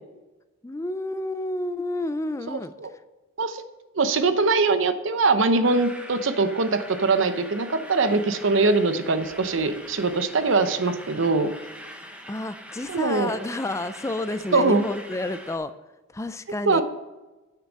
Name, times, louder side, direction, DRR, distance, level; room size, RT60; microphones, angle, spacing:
voice 1, 0.6-2.7 12.3-15.7 16.1-16.8, left 2 dB, 15° left, 12 dB, 0.4 m, -30 dB
voice 2, 2.5-2.9 3.4-3.6 4.0-11.5 12.9-13.4 14.5-14.8 16.7-16.8, right 3 dB, 65° right, 10 dB, 0.8 m, -22 dB
sound 1, 5.6-15.6, equal, 5° right, 0.9 m, -43 dB
9.0 x 6.8 x 5.3 m, 1.1 s
head